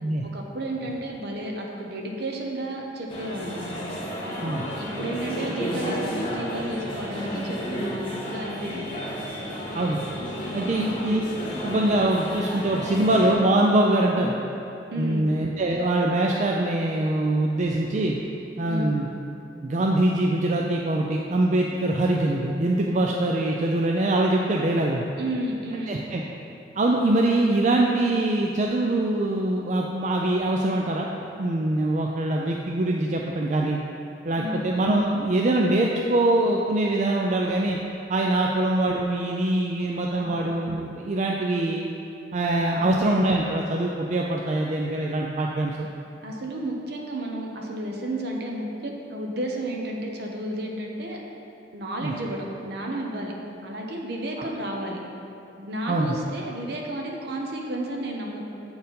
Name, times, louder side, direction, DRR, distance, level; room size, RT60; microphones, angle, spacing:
voice 1, 0.2-3.6 4.2-8.9 10.7-11.1 14.1-14.3 14.9-15.3 18.6-19.0 25.2-26.0 34.4-34.6 38.4-38.5 40.1-40.5 42.8-43.0 46.2-51.2 51.7-53.3 53.6-55.0 55.6-58.4, right 1 dB, 65° right, 0 dB, 1.0 m, -32 dB
sound 1, 3.1-13.3, equal, 30° left, 1.4 m, -32 dB
voice 2, 10.5-11.2 11.6-14.3 15.0-18.2 18.6-19.1 19.6-25.0 25.9-26.2 26.8-33.8 34.2-37.8 38.1-41.9 42.3-45.9 52.0-52.1 55.9-56.1, right 1 dB, 40° right, -1 dB, 0.4 m, -23 dB
7.8 x 4.4 x 5.3 m, 2.7 s
head